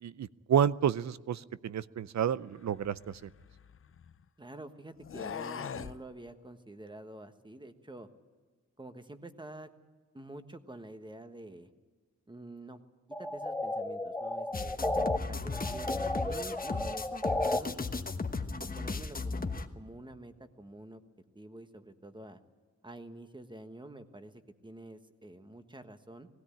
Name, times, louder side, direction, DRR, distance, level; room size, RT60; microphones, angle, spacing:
voice 1, 0.0-3.3, right 8 dB, 70° right, 17 dB, 0.6 m, -30 dB
sound 1, 2.7-4.2 5.0-6.0, left 7 dB, 50° left, 0.6 m, -42 dB
voice 2, 4.4-8.1 8.8-9.7 10.1-11.7 12.3-12.8 13.2-14.8 15.2-17.9 18.6-21.0 21.3-22.4 22.8-26.3, right 1 dB, 15° right, 8 dB, 1.4 m, -48 dB
sound 2, 13.1-15.2 15.5-17.6, left 1 dB, 5° left, 0.8 m, -33 dB
sound 3, 14.5-19.7, left 3 dB, 30° left, 1.2 m, -36 dB
19.5 x 17.0 x 8.5 m, 1.5 s
wide cardioid pair, 100°, 29 cm